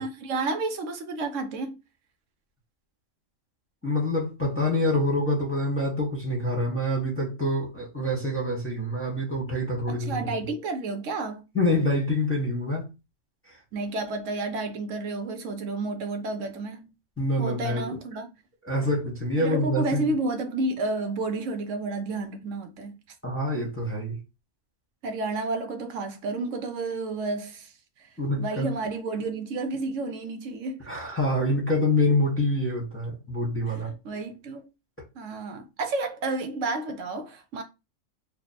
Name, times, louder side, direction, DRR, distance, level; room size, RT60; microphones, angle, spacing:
voice 1, 0.0-1.8 9.9-11.4 13.7-16.9 17.4-18.3 19.4-23.0 25.0-27.7 28.0-28.1 28.4-30.9 33.7-34.6 35.2-37.6, right 3 dB, 75° right, 1.0 m, -31 dB
voice 2, 3.8-10.3 11.5-12.9 17.2-18.0 18.7-20.1 23.2-24.2 28.2-28.7 30.9-33.9, left 1 dB, 10° left, 1.3 m, -26 dB
3.3 x 2.4 x 4.2 m
omnidirectional pair, 1.3 m